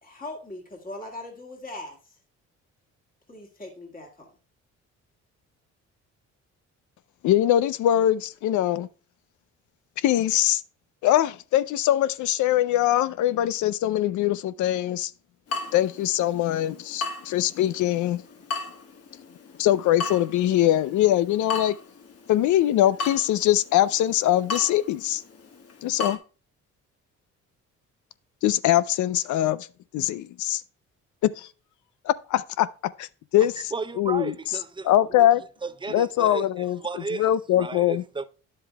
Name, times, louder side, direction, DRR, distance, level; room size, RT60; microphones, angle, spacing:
voice 1, 0.0-2.2 3.3-4.3, left 2 dB, 30° left, 2.0 m, -40 dB
voice 2, 7.2-8.9 10.0-10.6 11.0-15.1 15.7-18.2 19.6-21.8 22.3-25.2 25.8-26.2 28.4-29.7 29.9-30.6 31.2-31.5 32.0-33.1 33.3-33.7 34.0-34.3 34.8-35.4 35.9-38.0, left 12 dB, 75° left, 0.5 m, -22 dB
Water tap faucet / Drip, 15.5-26.2, left 4 dB, 50° left, 1.4 m, -37 dB
voice 3, 33.7-35.3 35.6-38.3, right 4 dB, 15° right, 0.6 m, -34 dB
10.0 x 7.5 x 2.2 m
cardioid pair, 90°, 30 cm